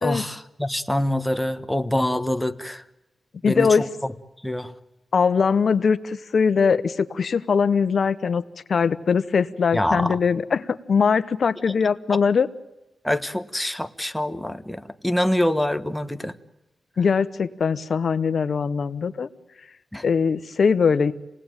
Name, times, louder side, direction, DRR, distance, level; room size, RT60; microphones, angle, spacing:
voice 1, 0.0-2.8 3.4-3.9 4.4-4.7 9.7-10.2 13.0-16.3 19.9-20.0, left 1 dB, 5° left, 9 dB, 1.3 m, -25 dB
voice 2, 3.4-3.9 5.1-8.4 8.7-12.5 17.0-19.3 20.0-21.1, left 5 dB, 65° left, 13 dB, 1.1 m, -21 dB
27.0 x 18.5 x 9.0 m, 1.0 s
cardioid pair, 85°, 0 cm